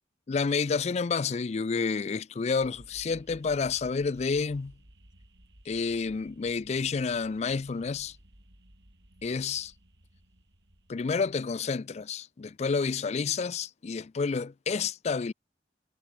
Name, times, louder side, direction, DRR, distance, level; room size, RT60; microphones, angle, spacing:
voice 1, 0.3-4.7 5.7-8.1 9.2-9.7 10.9-15.3, left 5 dB, 40° left, 0.4 m, -29 dB
sound 1, 2.6-11.8, right 1 dB, 65° right, 4.5 m, -57 dB
head